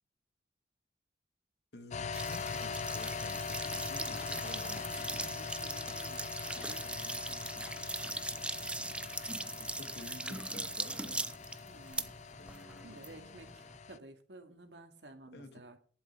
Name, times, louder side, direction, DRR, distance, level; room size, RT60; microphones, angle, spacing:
voice 1, 1.7-4.4 9.2-11.3 12.4-13.6 15.3-15.8, left 2 dB, 65° left, 7 dB, 1.9 m, -52 dB
sound 1, 1.9-14.0, left 5 dB, 40° left, 0.5 m, -42 dB
sound 2, 2.1-13.8, right 2 dB, 5° right, 0.6 m, -40 dB
voice 2, 3.8-7.5 11.6-12.2 12.8-15.8, right 1 dB, 75° right, 5 dB, 2.3 m, -53 dB
11.5 x 10.5 x 4.6 m, 0.43 s
head